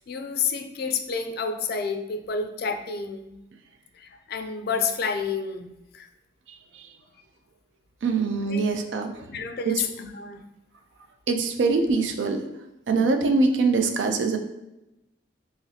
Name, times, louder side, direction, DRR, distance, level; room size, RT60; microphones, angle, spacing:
voice 1, 0.1-3.3 4.0-5.7 5.9-6.1 8.5-8.6 9.3-10.4, left 5 dB, 55° left, 7 dB, 0.4 m, -29 dB
voice 2, 8.0-9.1 9.7-9.8 11.3-12.4 12.9-14.4, right 4 dB, 75° right, 6 dB, 0.4 m, -23 dB
3.9 x 3.0 x 2.7 m, 0.92 s
head